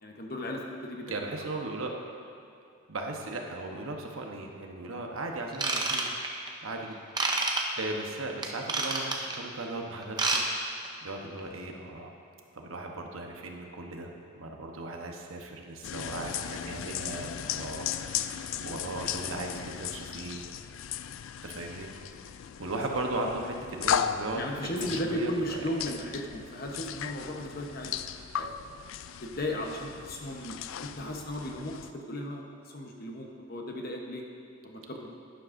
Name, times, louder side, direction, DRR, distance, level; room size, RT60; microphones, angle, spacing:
voice 1, 0.0-1.2 22.6-23.3 24.3-27.9 28.4-28.5 29.1-34.2 34.6-35.2, equal, 45° left, 1 dB, 1.0 m, -36 dB
voice 2, 1.1-2.0 2.9-6.1 6.6-12.1 12.5-20.4 21.4-21.9 22.6-25.3 34.8-34.9, right 2 dB, 85° right, 2 dB, 1.0 m, -37 dB
Ratchet pawl / Tools, 5.5-6.5 7.2-7.6 8.4-9.3 10.0-10.4 10.7-10.9 11.4-11.5, right 3 dB, 20° right, 0.6 m, -28 dB
sound 1, 15.8-31.9, left 9 dB, 70° left, 0.3 m, -36 dB
11.5 x 10.5 x 2.6 m, 2.6 s
head